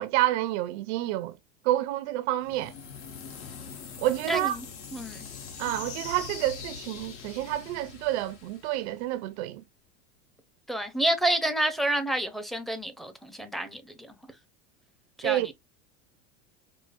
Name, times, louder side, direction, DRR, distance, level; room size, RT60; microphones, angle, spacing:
voice 1, 0.0-1.4 1.6-2.7 4.0-4.6 5.6-9.6 15.2-15.5, right 15 dB, 70° right, 0.5 m, -28 dB
sound 1, 2.4-9.3, left 6 dB, 90° left, 1.3 m, -42 dB
voice 2, 4.3-4.6 4.9-5.2 10.7-14.1 15.2-15.5, right 1 dB, ahead, 0.5 m, -29 dB
4.8 x 2.1 x 2.4 m
supercardioid pair, 125°, 34 cm